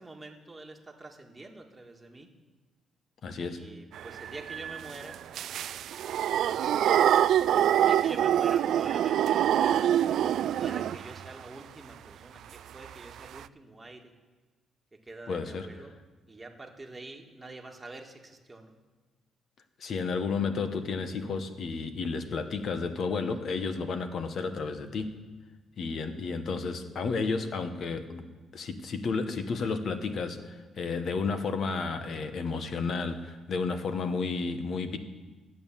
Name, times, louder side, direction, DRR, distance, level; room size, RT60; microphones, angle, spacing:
voice 1, 0.0-2.3 3.4-5.2 6.3-10.1 10.6-14.1 14.9-15.9 16.3-18.7, right 2 dB, 15° right, 1 dB, 1.8 m, -46 dB
voice 2, 3.2-3.6 15.3-15.7 19.8-25.2 25.8-28.2 28.5-35.0, left 4 dB, 60° left, 9 dB, 1.2 m, -32 dB
sound 1, 3.9-11.3 12.8-12.9 13.2-13.4, right 10 dB, 75° right, 0.3 m, -25 dB
12.5 x 8.8 x 7.4 m, 1.3 s
cardioid pair, 90°, 0 cm